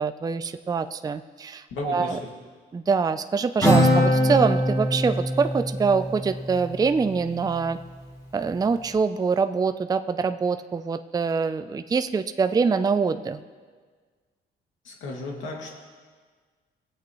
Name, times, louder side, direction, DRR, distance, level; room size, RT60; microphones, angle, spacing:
voice 1, 0.0-2.2 2.7-7.8 8.3-13.4, right 5 dB, 20° right, 10 dB, 0.4 m, -24 dB
voice 2, 1.7-2.2 14.8-15.7, left 2 dB, 80° left, -1 dB, 2.2 m, -34 dB
Acoustic guitar, 3.6-7.3, equal, 20° left, 3.4 m, -23 dB
19.0 x 8.3 x 3.1 m, 1.5 s
cardioid pair, 90°, 20 cm